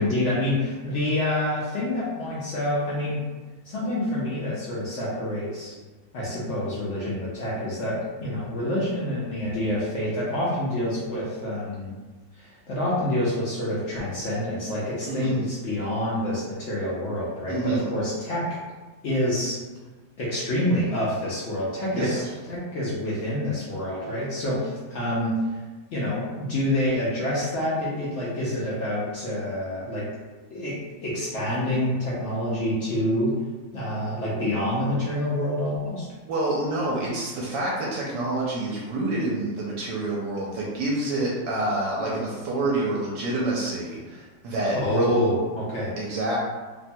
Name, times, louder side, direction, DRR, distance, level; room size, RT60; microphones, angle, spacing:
voice 1, 0.0-3.2 3.6-5.7 6.1-11.9 12.4-18.4 19.0-19.6 20.2-25.6 25.9-30.0 30.5-33.3 33.7-36.1 44.8-45.9, left 1 dB, 65° left, -7 dB, 0.7 m, -27 dB
voice 2, 15.1-15.4 17.5-17.9 21.9-22.1 36.3-45.1 46.0-46.4, right 2 dB, 80° right, -4 dB, 1.2 m, -27 dB
3.0 x 2.1 x 2.6 m, 1.3 s
omnidirectional pair, 1.9 m